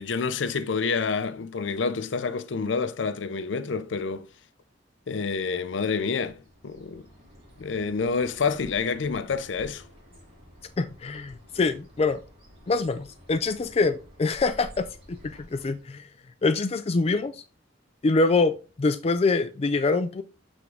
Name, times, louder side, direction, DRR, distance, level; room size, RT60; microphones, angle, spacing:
voice 1, 0.0-4.3 5.1-7.1 7.6-9.8, left 5 dB, 80° left, 0.5 m, -28 dB
Bird, 6.2-15.9, equal, 35° right, 2.6 m, -50 dB
voice 2, 10.8-12.2 12.7-16.1 16.4-17.4 18.0-20.2, left 3 dB, 35° left, 0.4 m, -25 dB
7.8 x 3.6 x 3.5 m
head